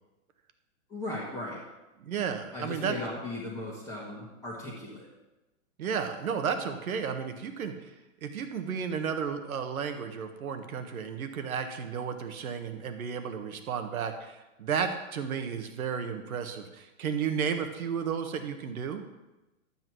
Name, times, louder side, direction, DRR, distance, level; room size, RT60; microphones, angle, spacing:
voice 1, 0.9-1.6 2.5-5.1, left 1 dB, 5° left, -7 dB, 1.4 m, -37 dB
voice 2, 2.0-2.9 5.8-7.9 8.2-19.0, right 7 dB, 85° right, 7 dB, 1.6 m, -33 dB
12.0 x 8.9 x 4.7 m, 1.0 s
hypercardioid pair, 165°, 42 cm